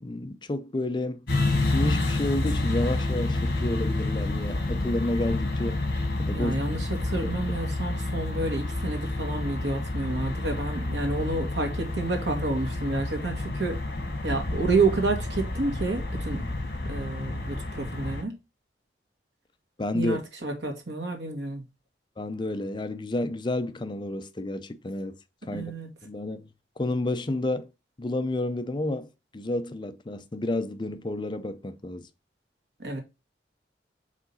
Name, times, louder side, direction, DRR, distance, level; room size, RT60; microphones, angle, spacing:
voice 1, 0.0-1.3 1.7-5.8 6.2-6.5 7.2-7.3 19.8-20.2 22.2-25.2 25.5-25.6 26.0-26.5 26.8-27.7 28.0-32.1, left 2 dB, 25° left, 0.5 m, -30 dB
sound 1, 1.3-18.2, left 2 dB, 60° left, 1.9 m, -29 dB
voice 2, 6.3-13.8 14.2-16.4 16.9-18.3 19.9-21.6 25.5-25.9 32.8-33.0, right 3 dB, 85° right, 1.9 m, -29 dB
5.0 x 3.8 x 5.5 m
head